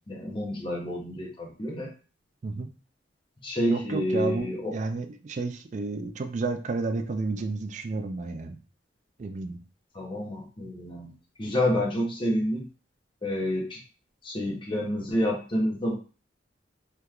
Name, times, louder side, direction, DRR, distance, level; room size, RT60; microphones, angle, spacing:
voice 1, 0.1-1.9 3.4-4.7 9.9-11.1 11.4-12.6 13.2-13.8 14.2-15.9, left 1 dB, 25° left, -2 dB, 0.8 m, -28 dB
voice 2, 3.7-8.6 9.2-9.6, right 3 dB, 40° right, 6 dB, 0.4 m, -31 dB
3.3 x 2.9 x 2.4 m, 0.36 s
head